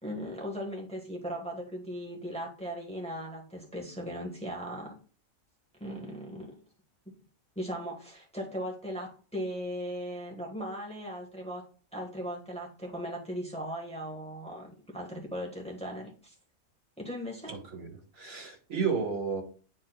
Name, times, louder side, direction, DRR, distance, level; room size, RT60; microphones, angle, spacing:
voice 1, 0.0-4.9 5.8-6.6 7.5-11.6 11.9-16.3 17.0-17.6, equal, 5° left, -2 dB, 1.4 m, -38 dB
voice 2, 17.5-19.4, right 5 dB, 70° right, 2 dB, 1.9 m, -32 dB
9.6 x 4.3 x 2.3 m, 0.39 s
omnidirectional pair, 1.4 m